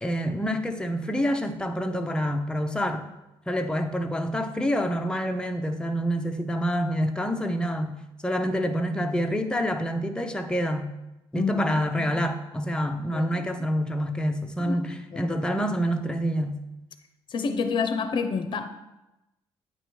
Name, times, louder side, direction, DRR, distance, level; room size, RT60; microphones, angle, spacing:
voice 1, 0.0-3.1 3.5-8.0 8.2-10.9 11.3-16.6, equal, 10° left, 5 dB, 0.7 m, -27 dB
voice 2, 11.3-11.7 13.1-13.4 14.6-14.8 15.1-15.4 17.3-18.7, left 5 dB, 55° left, 8 dB, 0.6 m, -28 dB
8.7 x 3.0 x 4.7 m, 0.95 s
cardioid pair, 90°, 10 cm